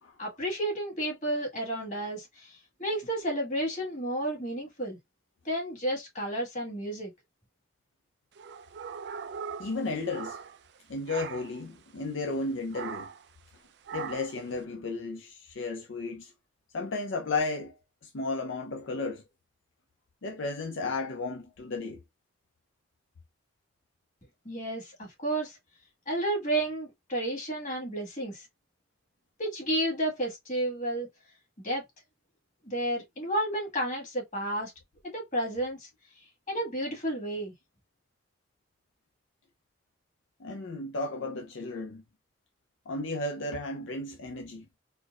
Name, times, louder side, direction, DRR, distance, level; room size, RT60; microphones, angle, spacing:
voice 1, 0.2-5.0 5.4-7.1 24.4-25.6 26.1-28.5 29.4-31.1 31.6-31.8 32.6-34.7 35.0-35.9 36.5-37.5, right 1 dB, 40° left, 1.6 m, -31 dB
sound 1, 8.4-10.8 11.1-11.6 12.7-13.3 13.9-14.4, right 6 dB, 55° right, 0.3 m, -40 dB
voice 2, 9.6-10.4 10.9-13.1 13.9-16.3 16.7-17.7 18.0-19.2 20.2-22.0 40.4-42.0 42.9-44.7, left 3 dB, 75° left, 0.5 m, -34 dB
4.4 x 2.0 x 2.4 m
head